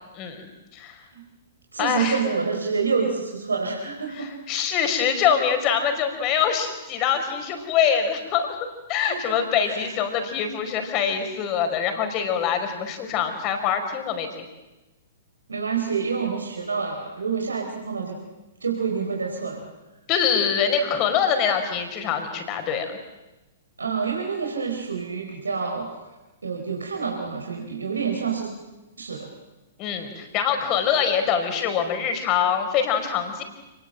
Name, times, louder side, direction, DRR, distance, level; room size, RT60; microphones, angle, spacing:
voice 1, 0.2-1.0 1.8-2.2 4.1-8.5 8.9-14.3 20.1-23.0 29.8-33.4, left 7 dB, 35° left, 7 dB, 4.9 m, -24 dB
voice 2, 1.7-4.3 4.7-4.8 9.1-9.3 9.6-9.9 15.5-18.2 18.6-19.6 23.8-25.9 26.4-28.5 29.0-29.3, right 5 dB, 75° right, 1 dB, 4.6 m, -27 dB
29.5 x 20.5 x 7.8 m, 1.1 s
figure-of-eight pair, 110°, 0 cm